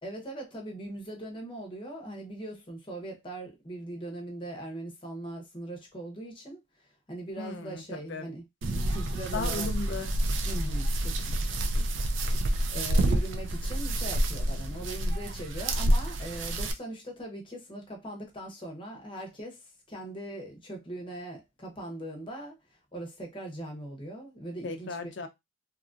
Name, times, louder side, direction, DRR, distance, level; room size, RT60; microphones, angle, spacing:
voice 1, 0.0-8.4 8.9-9.7 10.4-11.6 12.7-25.0, right 1 dB, 25° left, 0.8 m, -40 dB
voice 2, 7.4-8.3 9.3-10.1 24.6-25.3, left 4 dB, 55° left, 0.5 m, -36 dB
sound 1, 8.6-16.7, right 1 dB, 60° right, 0.4 m, -28 dB
2.9 x 2.5 x 2.4 m
head